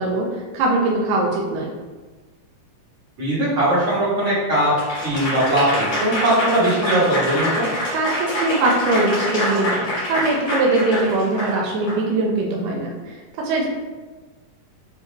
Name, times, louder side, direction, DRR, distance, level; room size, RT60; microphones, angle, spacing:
voice 1, 0.0-1.7 7.9-13.7, right 2 dB, 80° right, -2 dB, 2.2 m, -21 dB
voice 2, 3.2-4.7 5.0-7.7, right 1 dB, 50° right, -10 dB, 1.9 m, -20 dB
Applause / Crowd, 4.8-12.0, equal, 45° left, 1.3 m, -25 dB
6.8 x 2.7 x 2.3 m, 1.3 s
omnidirectional pair, 3.9 m